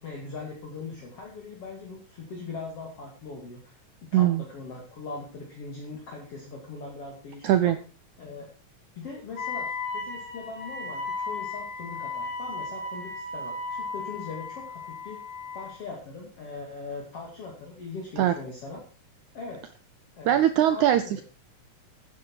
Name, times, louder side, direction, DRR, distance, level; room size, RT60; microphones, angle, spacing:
voice 1, 0.0-3.8 4.1-7.7 8.2-8.5 8.9-15.2 15.5-18.8 19.3-19.7 20.2-21.2, left 4 dB, 45° left, -2 dB, 3.2 m, -40 dB
voice 2, 4.1-4.5 7.4-7.8 18.2-18.3 20.3-21.2, right 11 dB, 80° right, 11 dB, 1.7 m, -21 dB
Wind instrument woodwind instrument, 9.4-15.8, left 3 dB, 85° left, 5.0 m, -35 dB
13.0 x 9.8 x 4.6 m, 0.36 s
omnidirectional pair, 4.1 m